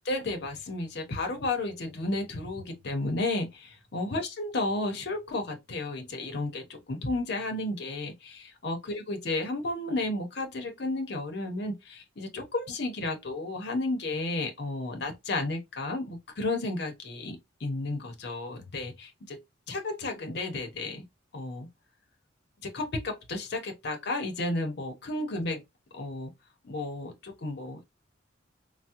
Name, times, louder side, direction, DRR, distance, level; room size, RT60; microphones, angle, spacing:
voice 1, 0.0-19.4 19.7-21.0 21.3-21.7 22.6-25.6 25.9-26.3 26.6-27.8, left 2 dB, 60° left, 0.6 m, -33 dB
3.4 x 2.0 x 2.8 m
head